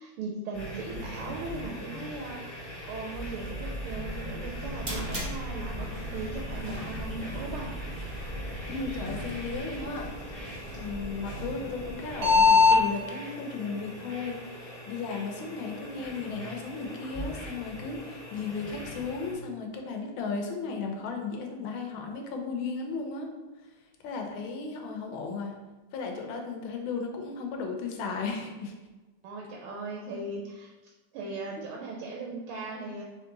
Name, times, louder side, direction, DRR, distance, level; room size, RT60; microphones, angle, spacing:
voice 1, 0.0-7.7 29.2-30.7 31.1-33.0, right 3 dB, 90° right, -1 dB, 1.5 m, -38 dB
sound 1, 0.5-19.3, equal, 25° left, 0.9 m, -40 dB
sound 2, 4.4-12.8, left 4 dB, 45° right, 0.5 m, -28 dB
voice 2, 8.7-10.4 10.7-23.3 24.0-25.5 25.9-28.7, left 4 dB, 75° left, 2 dB, 1.4 m, -35 dB
3.7 x 3.3 x 3.7 m, 1.2 s
omnidirectional pair, 2.3 m